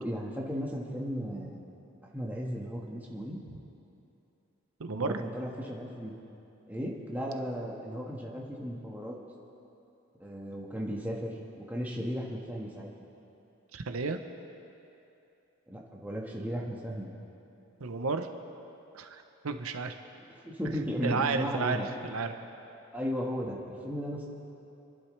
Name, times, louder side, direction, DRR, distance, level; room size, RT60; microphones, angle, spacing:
voice 1, 0.0-1.6 2.1-3.4 4.9-6.1 6.7-9.1 10.2-12.9 15.7-17.1 20.4-21.9 22.9-24.3, equal, 10° right, -3 dB, 1.5 m, -35 dB
voice 2, 4.8-5.2 13.7-14.2 17.8-18.3 18.9-19.9 21.0-22.3, right 4 dB, 90° right, 7 dB, 0.8 m, -32 dB
26.5 x 11.5 x 3.3 m, 2.8 s
head